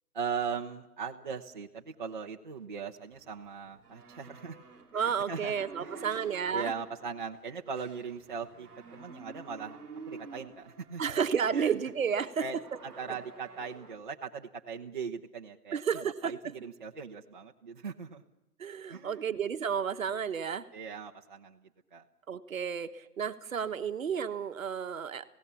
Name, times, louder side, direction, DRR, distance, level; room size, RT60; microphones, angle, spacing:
voice 1, 0.1-4.6 4.9-9.8 10.0-11.2 11.5-11.8 12.4-18.2 18.9-19.3 20.7-22.0, right 6 dB, 35° right, 1 dB, 0.7 m, -40 dB
sound 1, 3.1-13.9, right 4 dB, 5° right, 0.8 m, -51 dB
voice 2, 4.9-6.7 11.0-12.4 15.7-16.3 18.6-20.6 22.3-25.2, right 7 dB, 60° right, 10 dB, 1.1 m, -31 dB
27.5 x 17.0 x 6.9 m, 0.95 s
hypercardioid pair, 170°, 46 cm